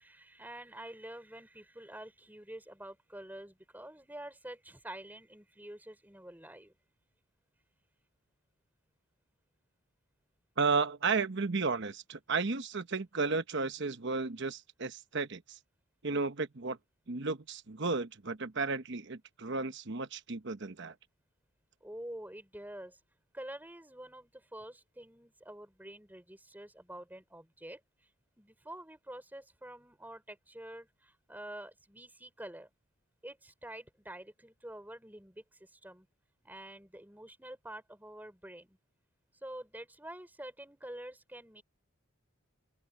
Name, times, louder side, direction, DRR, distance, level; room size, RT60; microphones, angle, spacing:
voice 1, 0.0-6.7 21.8-23.0 23.3-28.1 28.4-32.7 33.2-36.1 36.4-38.8 39.4-41.6, right 1 dB, 10° right, 5.5 m, -47 dB
voice 2, 10.6-15.6 16.0-16.8 17.1-20.9, right 4 dB, 55° right, 1.0 m, -33 dB
open air
head